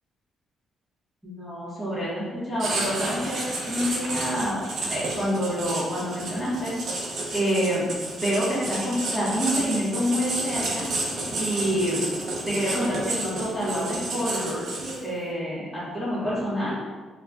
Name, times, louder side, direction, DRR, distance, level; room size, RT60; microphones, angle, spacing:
voice 1, 1.2-4.6 4.9-6.7 7.3-7.9 8.2-10.8 11.4-12.0 12.4-14.6 15.0-16.8, equal, 5° left, -10 dB, 1.4 m, -27 dB
Writing, 2.6-15.2, right 2 dB, 60° right, 0.7 m, -31 dB
4.2 x 2.4 x 2.6 m, 1.4 s
cardioid pair, 90°, 0 cm